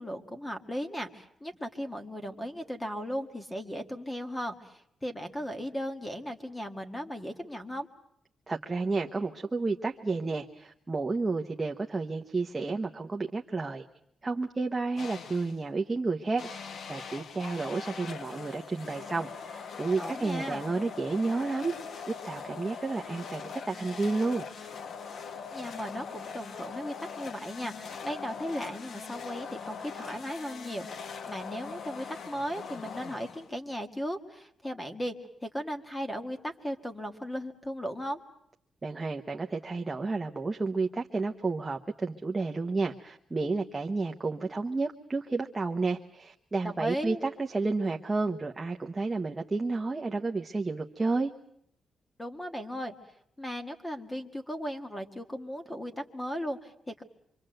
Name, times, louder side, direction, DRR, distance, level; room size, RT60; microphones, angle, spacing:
voice 1, 0.0-7.9 20.0-20.6 25.5-35.1 35.4-38.2 46.6-47.2 52.2-52.9 53.4-57.0, equal, 10° left, 6 dB, 1.9 m, -37 dB
voice 2, 8.5-13.8 14.2-21.7 22.1-24.5 38.8-51.3, right 3 dB, 15° right, 2 dB, 1.0 m, -31 dB
sound 1, 15.0-15.6 16.4-33.7, left 6 dB, 55° left, 1.2 m, -42 dB
26.5 x 25.0 x 7.8 m, 0.70 s
wide cardioid pair, 175°, 0 cm